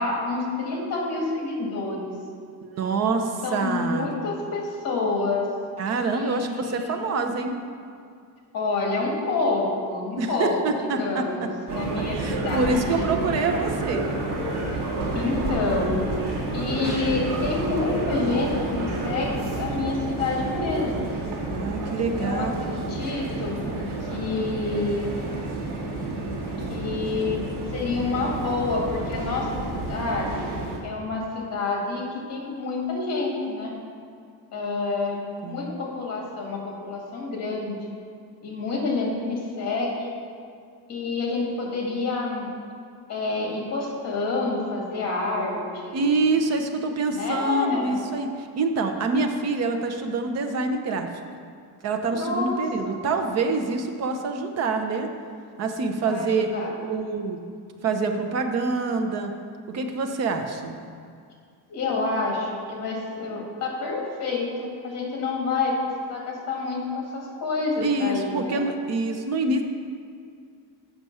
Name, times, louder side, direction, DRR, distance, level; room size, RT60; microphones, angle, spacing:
voice 1, 0.0-2.1 3.4-5.5 6.0-7.1 8.5-13.1 15.1-16.0 16.5-21.2 22.0-23.7 24.0-25.2 26.6-27.4 27.7-29.6 29.9-30.5 30.8-33.7 34.5-37.8 38.4-40.2 40.9-42.5 43.1-46.1 47.1-48.0 52.1-53.0 56.0-56.7 61.7-68.7, left 3 dB, 40° left, -2 dB, 2.2 m, -28 dB
voice 2, 2.6-4.1 5.8-7.5 10.2-11.5 12.1-14.0 21.5-22.8 35.4-35.7 45.9-51.1 51.8-55.1 55.6-56.5 56.8-57.4 57.8-59.3 59.7-60.8 67.8-69.6, right 3 dB, 40° right, 5 dB, 0.8 m, -26 dB
sound 1, 11.7-30.8, right 2 dB, 55° right, 1.9 m, -30 dB
7.9 x 6.0 x 5.5 m, 2.2 s
cardioid pair, 160°, 39 cm